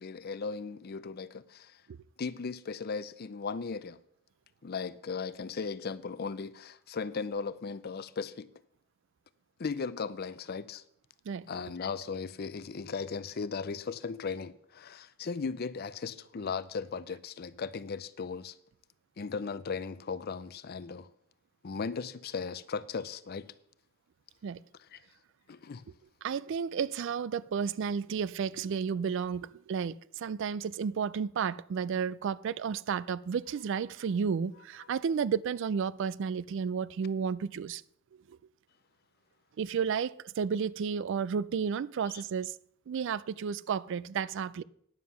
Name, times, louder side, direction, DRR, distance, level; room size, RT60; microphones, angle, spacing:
voice 1, 0.0-1.8 2.2-4.0 4.6-8.5 9.6-10.8 11.5-18.6 19.2-21.1 21.6-23.5 24.9-25.0 25.5-25.8 42.1-42.2, left 5 dB, 50° left, 0.5 m, -37 dB
voice 2, 26.2-37.8 38.3-38.4 39.6-42.6 42.9-44.6, right 6 dB, 60° right, 0.3 m, -32 dB
9.8 x 7.4 x 5.7 m
head